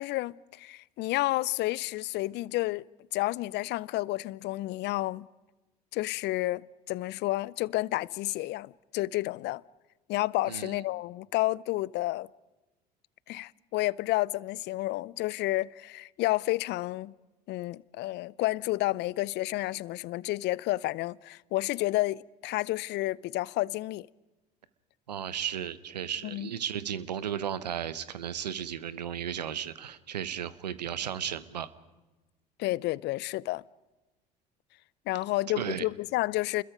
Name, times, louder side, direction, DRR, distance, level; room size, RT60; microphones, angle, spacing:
voice 1, 0.0-2.9 3.1-5.3 5.9-9.6 10.1-12.3 13.3-17.1 17.5-24.1 26.2-26.5 32.6-33.6 35.1-36.6, left 18 dB, 55° left, 0.7 m, -30 dB
voice 2, 25.1-31.7 35.6-35.9, right 9 dB, 90° right, 1.1 m, -34 dB
29.0 x 21.5 x 5.2 m
hypercardioid pair, 65°, 21 cm